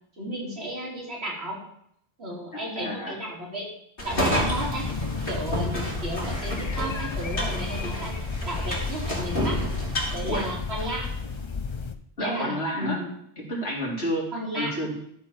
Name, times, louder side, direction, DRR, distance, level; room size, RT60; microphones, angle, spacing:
voice 1, 0.2-1.6 2.2-3.7 4.0-4.8 5.3-8.1 8.4-9.6 10.1-11.1 12.2-13.1 14.3-14.7, right 1 dB, 85° right, -3 dB, 3.3 m, -33 dB
voice 2, 2.6-3.1 10.3-10.4 12.2-13.0 13.4-15.0, equal, 90° left, -3 dB, 3.2 m, -30 dB
sound 1, 4.0-11.2, equal, 60° left, 3.1 m, -31 dB
sound 2, 4.3-11.9, left 4 dB, 35° left, 0.5 m, -32 dB
12.5 x 4.5 x 7.0 m, 0.71 s
omnidirectional pair, 1.0 m